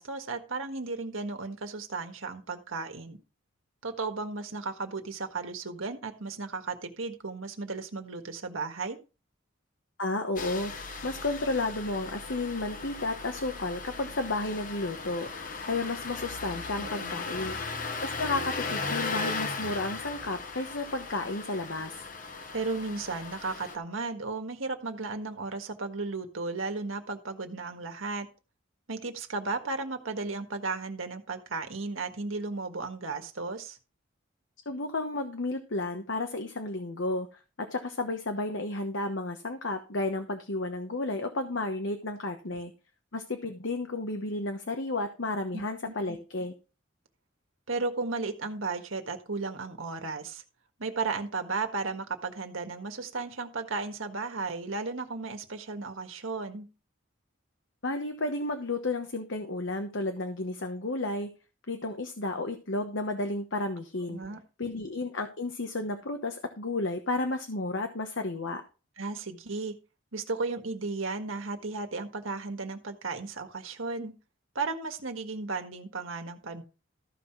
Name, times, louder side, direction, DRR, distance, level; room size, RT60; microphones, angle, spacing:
voice 1, 0.0-3.2 3.8-9.0 16.8-17.3 22.5-28.3 28.9-33.8 42.5-42.6 45.5-45.9 47.7-50.4 50.8-56.7 64.1-64.4 69.0-69.7 70.1-74.1 74.6-76.6, right 3 dB, 85° right, 5 dB, 1.7 m, -35 dB
voice 2, 10.0-10.7 11.0-15.3 15.6-17.6 18.0-22.1 34.7-37.3 37.6-42.7 43.1-46.5 57.8-61.3 61.7-64.2 64.6-68.6, left 2 dB, 70° left, 6 dB, 1.1 m, -32 dB
Engine starting, 10.4-23.8, left 4 dB, 40° left, 1.1 m, -37 dB
14.0 x 5.8 x 4.6 m, 0.32 s
head